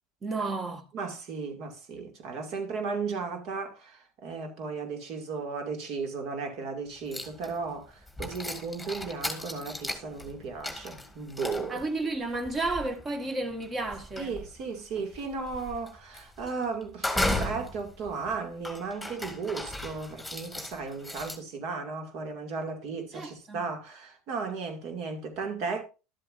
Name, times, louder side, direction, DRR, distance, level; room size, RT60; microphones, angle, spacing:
voice 1, 0.2-0.8 11.7-14.3 23.1-23.6, right 2 dB, 25° right, 1.5 m, -32 dB
voice 2, 0.9-11.8 14.2-25.8, right 4 dB, 60° right, 2.2 m, -35 dB
sound 1, 7.1-7.7 8.1-21.4, left 1 dB, ahead, 2.1 m, -36 dB
12.0 x 7.7 x 2.6 m
hypercardioid pair, 80°, 0 cm